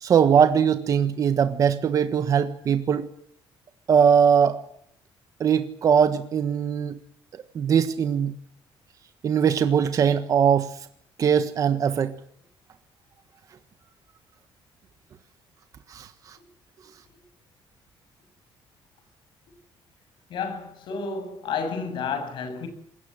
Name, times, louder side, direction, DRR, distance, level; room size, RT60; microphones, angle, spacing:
voice 1, 0.0-3.1 3.9-4.6 5.4-6.9 7.5-8.3 9.2-10.7 11.2-12.1 15.9-16.1, right 7 dB, 40° right, 1.4 m, -21 dB
voice 2, 20.3-22.7, left 5 dB, 60° left, 7.5 m, -31 dB
26.5 x 21.0 x 7.8 m
cardioid pair, 165°, 9 cm